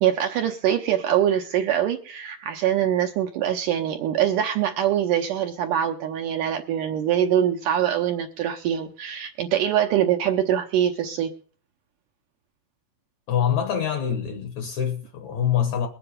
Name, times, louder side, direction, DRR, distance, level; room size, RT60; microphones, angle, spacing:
voice 1, 0.0-11.3, right 10 dB, 75° right, 1.9 m, -23 dB
voice 2, 13.3-15.9, left 9 dB, 60° left, 2.0 m, -25 dB
21.5 x 7.8 x 5.0 m
omnidirectional pair, 4.6 m